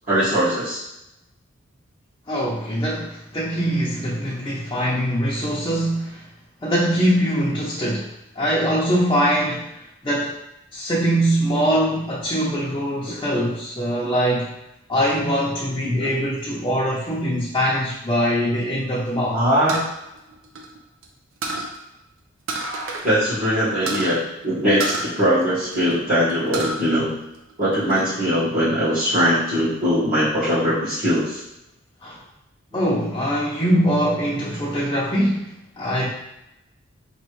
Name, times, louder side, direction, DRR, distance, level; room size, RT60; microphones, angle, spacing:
voice 1, 0.1-0.8 13.0-13.1 15.8-16.1 19.3-19.8 23.0-27.1 27.6-31.4, equal, 45° right, -12 dB, 1.5 m, -21 dB
voice 2, 2.3-6.3 6.6-8.1 8.4-10.4 10.7-14.5 14.9-19.4 32.0-32.2 32.7-36.1, equal, 20° left, -6 dB, 0.6 m, -22 dB
sound 1, 19.7-21.0 21.4-21.8 22.5-23.1 23.4-23.5 23.9-24.1 24.8-25.9 26.3-26.8 27.2-28.0, right 2 dB, 85° right, 0.7 m, -29 dB
4.9 x 3.1 x 3.1 m, 0.88 s
head